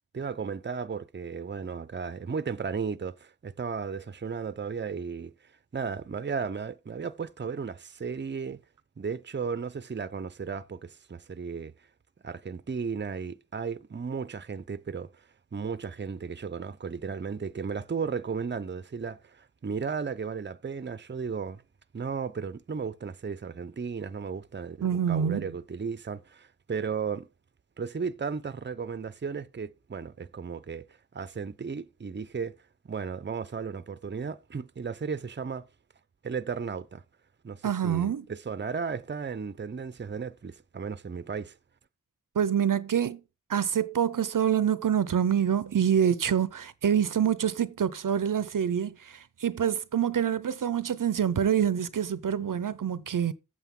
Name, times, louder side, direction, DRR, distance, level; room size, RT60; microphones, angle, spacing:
voice 1, 0.1-5.3 5.7-8.6 9.0-11.7 12.2-21.6 21.9-27.3 27.8-30.9 31.1-32.6 32.8-35.6 36.2-37.0 37.4-41.6, right 5 dB, 35° right, 0.6 m, -35 dB
voice 2, 24.8-25.5 37.6-38.2 42.4-43.2 43.5-53.3, right 8 dB, 80° right, 0.6 m, -26 dB
8.2 x 7.7 x 3.6 m
wide cardioid pair, 45°, 32 cm